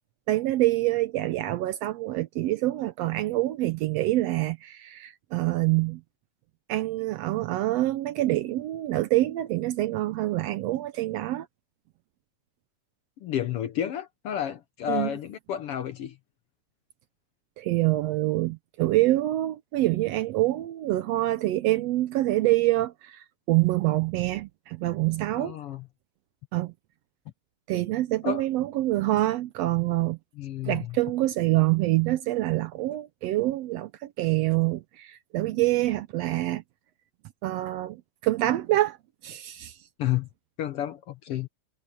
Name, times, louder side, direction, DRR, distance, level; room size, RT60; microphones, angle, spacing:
voice 1, 0.3-6.0 6.7-11.5 14.9-15.1 17.6-25.6 26.5-26.7 27.7-30.2 30.7-33.9 34.2-36.6 37.4-39.0 39.2-39.7, right 17 dB, 75° right, 1.6 m, -26 dB
voice 2, 13.2-16.2 25.4-25.9 28.2-28.4 30.4-31.0 40.0-40.3 40.6-41.5, left 11 dB, 65° left, 1.5 m, -31 dB
omnidirectional pair, 3.3 m